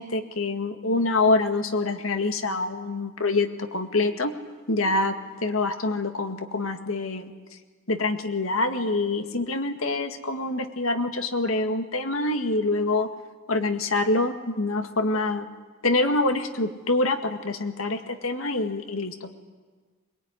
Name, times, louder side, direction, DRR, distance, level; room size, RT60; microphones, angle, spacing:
voice 1, 0.0-4.3 4.7-5.1 5.4-7.3 7.9-13.1 13.5-15.5 15.8-19.3, left 2 dB, 85° left, 6 dB, 2.1 m, -25 dB
22.5 x 22.0 x 9.9 m, 1.4 s
head